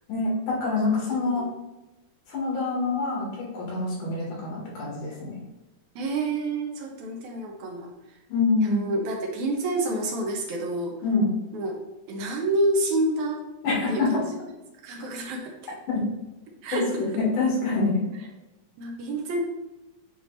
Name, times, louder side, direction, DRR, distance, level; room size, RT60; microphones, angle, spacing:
voice 1, 0.1-1.4 2.3-5.4 8.3-8.8 11.0-11.3 13.6-14.1 16.7-16.8 17.2-18.0, left 3 dB, 85° left, -4 dB, 3.8 m, -25 dB
voice 2, 1.1-1.5 6.0-7.9 8.6-11.0 11.5-11.8 12.1-13.4 13.9-14.4 14.8-15.8 16.6-16.9 18.8-19.4, right 2 dB, 75° right, 0 dB, 2.3 m, -28 dB
8.8 x 3.2 x 4.1 m, 1.0 s
omnidirectional pair, 3.6 m